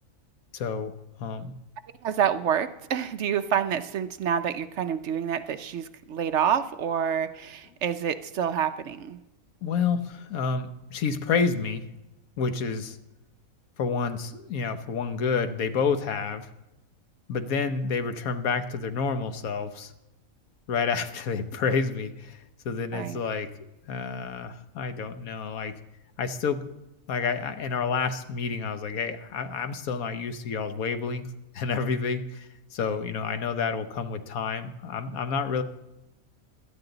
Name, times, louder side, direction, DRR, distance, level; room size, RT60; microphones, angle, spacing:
voice 1, 0.5-0.9 1.2-1.5 9.6-11.8 12.4-13.0 13.8-16.5 17.3-19.9 20.7-22.4 22.6-23.5 23.9-25.7 26.2-26.7 27.1-35.6, left 5 dB, 80° left, 9 dB, 1.4 m, -29 dB
voice 2, 2.0-9.2 22.9-23.2, right 8 dB, 65° right, 11 dB, 0.8 m, -28 dB
17.5 x 12.0 x 3.9 m, 0.95 s
omnidirectional pair, 1.5 m